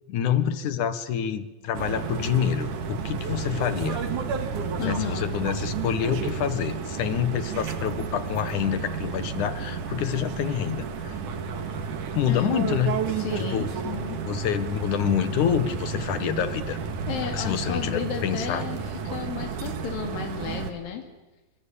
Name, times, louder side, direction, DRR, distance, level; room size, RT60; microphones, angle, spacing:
voice 1, 0.1-4.0 4.8-11.2 12.1-13.0 13.4-13.7 14.2-16.8 17.2-18.6, left 9 dB, 65° left, 11 dB, 2.8 m, -27 dB
sound 1, 1.7-20.7, right 5 dB, 65° right, 3.5 m, -32 dB
voice 2, 4.8-5.4 12.3-12.8 13.2-14.2 17.1-18.8 19.1-21.1, left 8 dB, 90° left, 3 dB, 4.1 m, -33 dB
26.0 x 25.5 x 8.7 m, 1.1 s
omnidirectional pair, 4.0 m